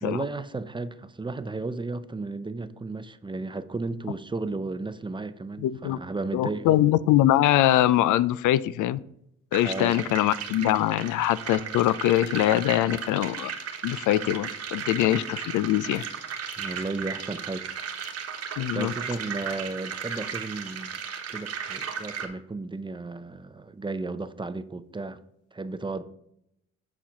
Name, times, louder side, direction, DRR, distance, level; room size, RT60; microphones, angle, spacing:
voice 1, 0.0-6.8 9.6-10.2 16.6-17.7 18.7-21.0 21.3-25.2 25.5-26.0, right 3 dB, 15° right, 0.5 m, -34 dB
voice 2, 5.6-6.0 6.3-9.0 9.5-13.5 13.8-16.0 18.6-18.9, left 13 dB, 80° left, 0.4 m, -23 dB
sound 1, 9.5-22.3, right 7 dB, 55° right, 1.2 m, -36 dB
8.4 x 4.3 x 5.0 m
cardioid pair, 90°, 30 cm